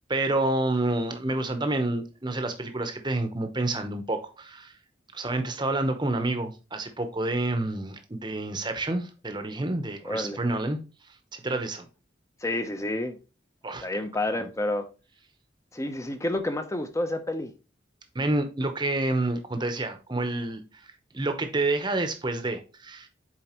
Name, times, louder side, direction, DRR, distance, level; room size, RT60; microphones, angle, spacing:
voice 1, 0.1-4.7 5.1-10.8 11.3-11.9 13.6-13.9 14.4-14.5 18.1-20.6 21.1-23.1, right 2 dB, 25° right, 0.9 m, -28 dB
voice 2, 10.0-10.4 12.4-13.2 13.8-14.9 15.7-17.5, left 1 dB, 15° left, 0.7 m, -29 dB
7.4 x 4.5 x 3.0 m
head